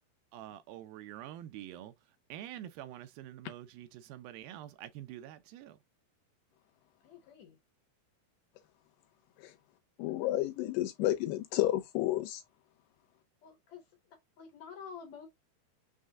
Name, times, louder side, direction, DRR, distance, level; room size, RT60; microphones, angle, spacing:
voice 1, 0.3-1.9 2.3-5.8, right 12 dB, 80° right, 2.2 m, -46 dB
voice 2, 7.0-7.6 13.4-13.8 14.4-15.3, left 6 dB, 65° left, 1.8 m, -48 dB
voice 3, 10.0-12.4, left 15 dB, 90° left, 2.9 m, -31 dB
6.4 x 2.2 x 3.4 m
omnidirectional pair, 4.5 m